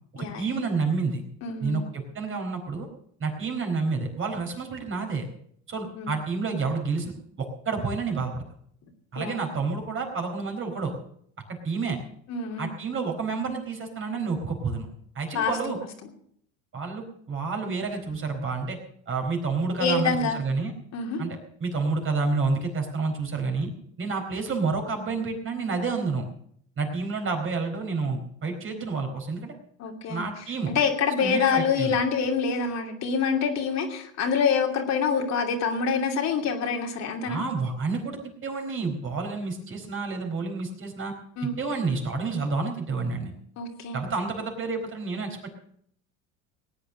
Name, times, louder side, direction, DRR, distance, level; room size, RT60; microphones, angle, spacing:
voice 1, 0.1-1.2 1.6-2.9 3.2-5.3 5.7-8.4 9.1-10.9 11.5-12.0 12.6-14.9 15.1-15.8 16.7-18.8 19.1-20.7 21.2-23.7 24.0-26.2 26.8-29.5 30.1-30.7 31.2-31.9 37.2-41.1 41.6-43.3 43.9-45.5, right 4 dB, 35° right, 4 dB, 4.3 m, -29 dB
voice 2, 1.4-1.8 6.0-6.1 9.2-9.4 12.3-12.7 15.3-15.5 19.8-20.4 20.9-21.3 29.8-30.3 30.7-37.4 41.4-41.6 43.6-44.0, left 5 dB, 50° left, 2 dB, 2.8 m, -26 dB
18.5 x 8.9 x 6.6 m, 0.66 s
supercardioid pair, 90°, 34 cm